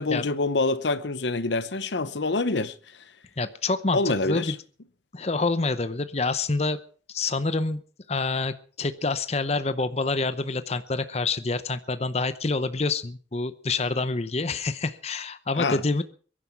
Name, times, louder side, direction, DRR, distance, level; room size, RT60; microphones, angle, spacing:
voice 1, 0.0-2.7 3.9-4.5 15.5-15.8, left 3 dB, 80° left, 0.9 m, -26 dB
voice 2, 3.4-4.5 5.1-6.8 7.1-7.8 8.1-16.0, left 3 dB, 35° left, 0.7 m, -27 dB
22.5 x 11.0 x 4.6 m
head